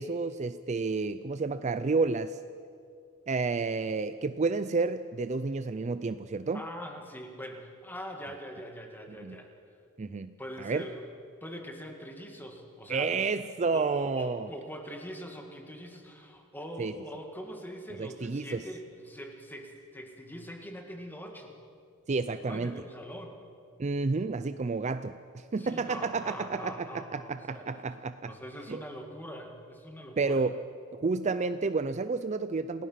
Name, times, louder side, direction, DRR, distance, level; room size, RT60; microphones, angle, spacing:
voice 1, 0.0-2.4 3.3-6.6 9.2-9.4 10.0-10.9 12.9-14.5 16.8-16.9 18.0-18.6 22.1-22.8 23.8-28.3 28.7-28.8 30.2-30.6 30.9-32.9, right 4 dB, 30° right, 12 dB, 0.4 m, -30 dB
voice 2, 6.5-9.5 10.4-11.1 11.4-13.1 13.7-21.6 22.4-23.4 25.6-27.7 28.3-30.4, equal, 10° left, 3 dB, 2.0 m, -43 dB
28.5 x 17.5 x 5.8 m, 2.4 s
head